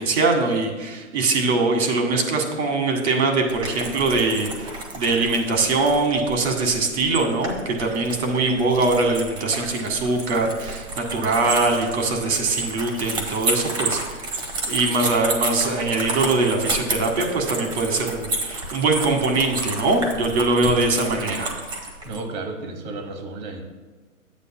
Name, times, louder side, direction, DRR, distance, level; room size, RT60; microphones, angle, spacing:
voice 1, 0.0-14.0 14.7-21.5, right 3 dB, 55° right, 2 dB, 1.8 m, -22 dB
sound 1, 3.5-22.2, right 2 dB, 10° right, 0.7 m, -31 dB
voice 2, 22.0-23.6, right 3 dB, 30° right, 5 dB, 1.2 m, -32 dB
12.0 x 8.3 x 2.2 m, 1.3 s
hypercardioid pair, 130°, 41 cm